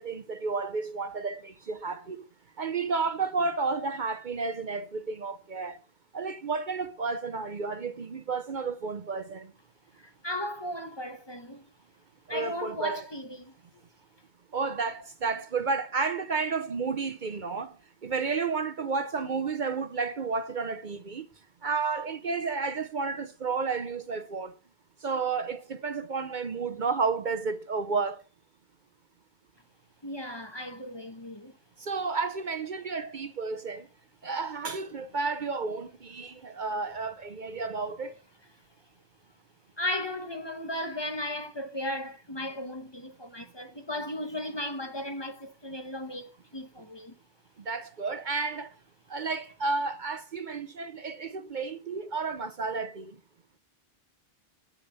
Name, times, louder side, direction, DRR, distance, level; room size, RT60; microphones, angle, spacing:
voice 1, 0.0-2.2 2.6-5.8 6.1-9.5 12.3-13.1 14.5-17.8 18.0-21.3 21.6-24.5 25.0-28.2 31.8-33.9 34.2-38.1 47.6-48.7 49.1-53.2, right 4 dB, 50° right, 0.8 m, -31 dB
voice 2, 10.0-11.6 12.3-13.5 30.0-31.5 39.8-47.1, left 1 dB, 25° left, 1.0 m, -36 dB
8.7 x 6.8 x 5.4 m
omnidirectional pair, 1.1 m